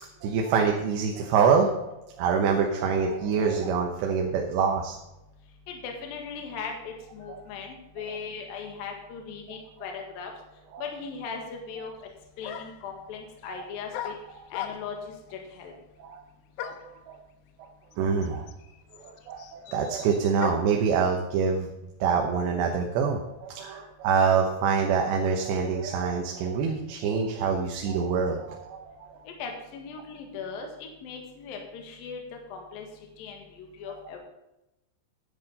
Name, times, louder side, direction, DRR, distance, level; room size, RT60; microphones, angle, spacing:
voice 1, 0.0-4.9 7.3-7.4 8.1-8.2 10.7-10.9 13.5-13.6 16.0-16.2 16.6-17.2 17.6-17.7 18.0-18.5 19.0-21.7 22.0-29.2, right 6 dB, 80° right, 2 dB, 3.3 m, -26 dB
voice 2, 5.7-10.3 10.8-11.9 12.4-14.1 14.5-15.7 29.3-32.2 32.5-32.9 33.2-34.2, left 5 dB, 60° left, 3 dB, 3.3 m, -38 dB
sound 1, 12.0-12.1 12.4-12.9 13.9-15.1 16.6-17.0 17.9-18.0 18.2-20.8, left 10 dB, 85° left, 2.9 m, -38 dB
10.5 x 10.5 x 5.4 m, 0.92 s
omnidirectional pair, 5.0 m